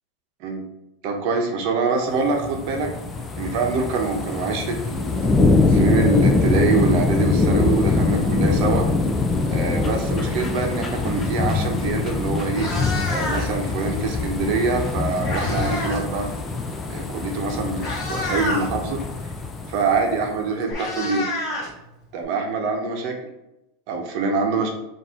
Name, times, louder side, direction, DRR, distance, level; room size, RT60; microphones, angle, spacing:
voice 1, 1.0-2.9 3.4-5.3 5.7-8.8 9.5-12.7 13.1-16.3 16.9-19.0 19.7-21.3 22.1-23.2 23.9-24.7, right 4 dB, 50° right, 2 dB, 0.8 m, -24 dB
sound 1, 2.1-20.3 20.7-20.8, left 3 dB, 15° left, 0.4 m, -23 dB
Meow, 11.9-12.0 12.4-13.7 14.7-16.1 16.3-16.6 17.3-17.4 17.7-18.7 20.0-20.1 20.3-22.2, left 2 dB, 35° left, 1.1 m, -29 dB
4.2 x 2.6 x 3.7 m, 0.92 s
supercardioid pair, 155°, 0 cm